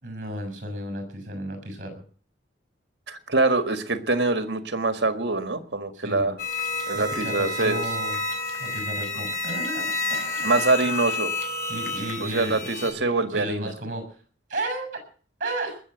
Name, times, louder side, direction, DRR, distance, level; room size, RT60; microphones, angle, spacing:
voice 1, 0.0-1.9 5.9-6.3 6.9-8.2 8.6-10.5 11.7-12.7 13.0-14.0 14.5-14.9 15.4-15.8, right 1 dB, 45° right, 7 dB, 6.9 m, -33 dB
voice 2, 3.1-6.4 6.9-7.8 10.4-11.3 12.2-13.7, right 3 dB, 65° right, 9 dB, 1.7 m, -24 dB
sound 1, 6.4-12.9, left 2 dB, 50° left, 3.9 m, -30 dB
20.5 x 7.7 x 8.1 m, 0.43 s
head